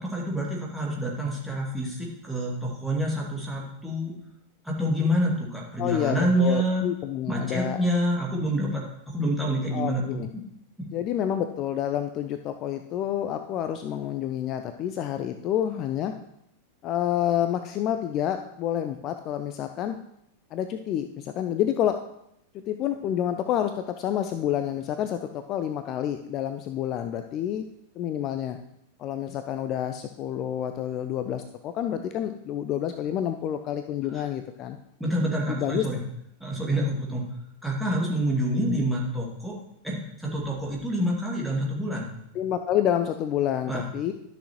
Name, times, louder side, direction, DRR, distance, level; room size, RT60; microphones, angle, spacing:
voice 1, 0.0-4.1 4.6-6.9 7.3-10.0 10.8-10.9 34.1-34.2 35.0-36.0 36.4-37.2 37.6-39.6 39.8-42.1 43.7-43.9, equal, 5° right, -4 dB, 2.3 m, -27 dB
voice 2, 5.8-7.8 9.7-10.3 10.9-16.1 16.8-20.0 20.5-22.0 22.5-27.6 28.0-28.6 29.0-34.8 35.5-35.9 42.3-44.1, left 10 dB, 35° left, 8 dB, 0.4 m, -28 dB
12.5 x 6.3 x 3.0 m, 0.77 s
figure-of-eight pair, 90°, 0 cm